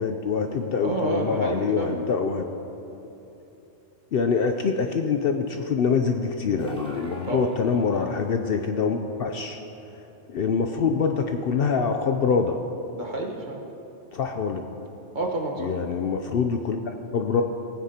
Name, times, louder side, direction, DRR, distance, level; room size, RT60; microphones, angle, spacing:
voice 1, 0.0-2.5 4.1-9.6 10.3-12.6 14.1-14.6 15.6-17.4, left 5 dB, 60° left, 5 dB, 0.7 m, -25 dB
voice 2, 0.8-1.9 7.3-7.5 12.9-13.6 15.1-15.7, right 2 dB, 40° right, 0 dB, 1.3 m, -29 dB
sound 1, 6.6-8.1, equal, 5° left, 1.5 m, -40 dB
18.5 x 9.5 x 2.8 m, 3.0 s
omnidirectional pair, 1.2 m